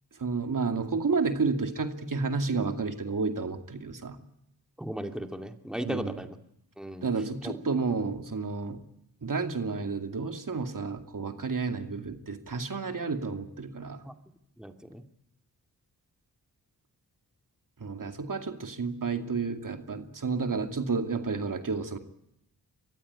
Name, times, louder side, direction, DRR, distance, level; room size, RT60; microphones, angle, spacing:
voice 1, 0.2-4.2 5.8-6.1 7.0-8.8 9.2-14.0 17.8-22.0, right 4 dB, 50° right, 6 dB, 2.6 m, -31 dB
voice 2, 4.8-6.4 6.8-7.1 7.4-7.6 14.0-14.1 14.6-15.0, right 1 dB, ahead, 5 dB, 2.5 m, -36 dB
23.0 x 15.0 x 9.9 m, 0.82 s
supercardioid pair, 40°, 40 cm